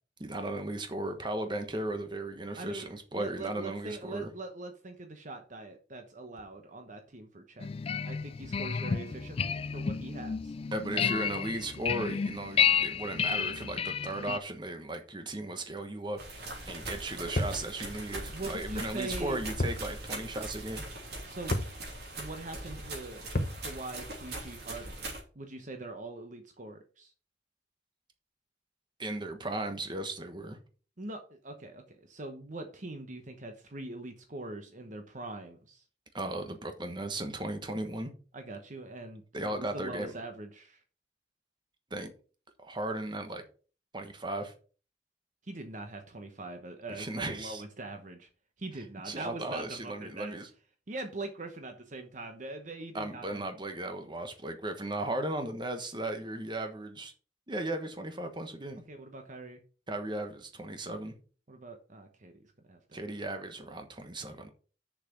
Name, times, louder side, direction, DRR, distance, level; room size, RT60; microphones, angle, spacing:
voice 1, 0.2-4.3 10.7-16.2 16.7-20.8 29.0-30.6 36.1-38.1 39.3-40.1 41.9-42.1 42.6-43.4 43.9-44.5 46.9-47.6 49.0-50.5 52.9-57.1 57.5-58.8 59.9-61.1 62.9-64.5, right 1 dB, 25° right, 1.3 m, -36 dB
voice 2, 2.6-7.7 8.0-10.5 10.9-11.0 18.3-19.5 21.3-21.6 22.2-23.2 23.6-25.1 25.3-27.1 31.0-35.8 38.3-40.8 45.5-48.3 48.6-50.3 50.9-53.5 58.9-59.6 61.5-63.0, right 2 dB, 45° right, 1.1 m, -42 dB
sound 1, 7.6-14.4, left 7 dB, 30° left, 0.3 m, -31 dB
sound 2, 16.2-25.2, right 2 dB, 60° right, 3.3 m, -41 dB
sound 3, 17.4-17.7 19.6-19.9 20.2-20.3 21.5-21.8 23.3-23.6, left 1 dB, 50° left, 0.9 m, -31 dB
6.9 x 5.9 x 5.9 m
head